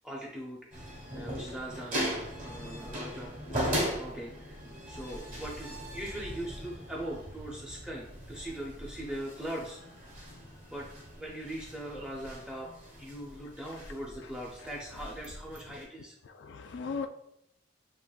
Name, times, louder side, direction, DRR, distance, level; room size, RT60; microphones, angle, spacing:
voice 1, 0.0-2.0 2.4-3.4 3.7-9.8 10.7-12.7 13.0-16.2, right 1 dB, 5° right, 0.6 m, -41 dB
sound 1, 0.7-15.8, equal, 50° right, 1.4 m, -39 dB
voice 2, 16.2-17.1, left 5 dB, 75° left, 0.3 m, -38 dB
7.0 x 2.9 x 2.3 m
head